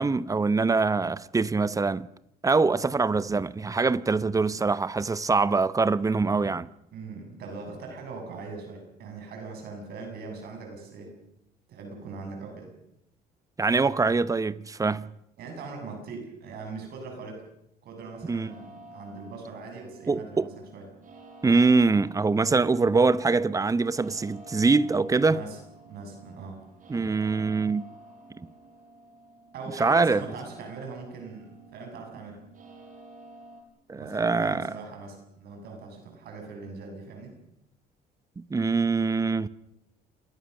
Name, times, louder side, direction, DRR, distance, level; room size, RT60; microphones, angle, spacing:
voice 1, 0.0-2.1 2.4-6.7 13.6-15.1 18.3-18.5 20.1-20.5 21.4-25.4 26.9-27.8 28.4-28.5 29.8-30.3 33.9-34.7 38.4-39.5, right 4 dB, 20° right, 0.8 m, -24 dB
voice 2, 6.9-11.2 11.7-12.7 15.4-17.4 17.8-20.8 25.3-25.6 25.8-26.7 29.5-32.4 33.9-37.3, right 4 dB, 70° right, 7.5 m, -41 dB
sound 1, 18.4-33.6, right 2 dB, 50° right, 5.8 m, -51 dB
27.0 x 20.5 x 6.7 m
cardioid pair, 110°, 17 cm